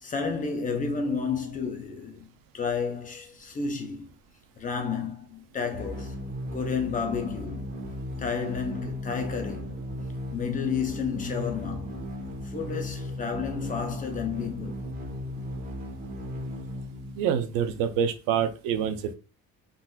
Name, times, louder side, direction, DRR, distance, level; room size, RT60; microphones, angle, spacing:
voice 1, 0.0-2.3 2.5-4.1 4.6-6.2 6.5-7.7 8.2-9.8 10.3-12.1 12.4-14.8, left 5 dB, 25° left, 0.6 m, -31 dB
sound 1, 5.7-17.7, left 1 dB, 25° right, 0.9 m, -36 dB
voice 2, 17.2-19.1, right 8 dB, 85° right, 0.6 m, -26 dB
3.9 x 2.5 x 2.3 m
cardioid pair, 130°, 32 cm